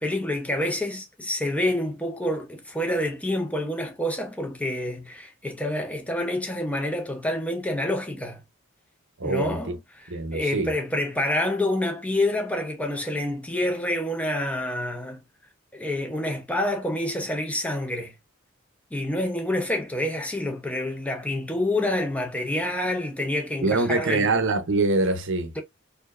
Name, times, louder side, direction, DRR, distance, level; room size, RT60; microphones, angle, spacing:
voice 1, 0.0-8.4 9.2-9.7 10.3-15.2 15.7-18.1 18.9-24.3, left 1 dB, 5° left, 0.8 m, -27 dB
voice 2, 9.2-9.7 10.1-10.7 23.6-25.5, right 3 dB, 60° right, 0.7 m, -24 dB
4.3 x 2.7 x 2.5 m
head